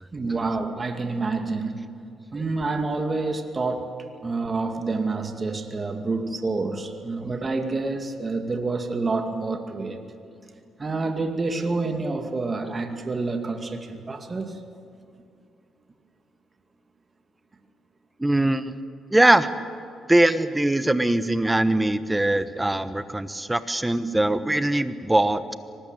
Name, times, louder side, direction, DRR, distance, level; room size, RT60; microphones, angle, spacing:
voice 1, 0.1-1.8 2.3-3.9 4.2-10.0 10.8-14.6, right 3 dB, 30° right, 5 dB, 2.3 m, -28 dB
voice 2, 18.2-18.8 19.1-19.5 20.1-25.4, right 1 dB, 10° right, 12 dB, 1.2 m, -21 dB
24.0 x 19.5 x 9.1 m, 2.5 s
cardioid pair, 90°, 0 cm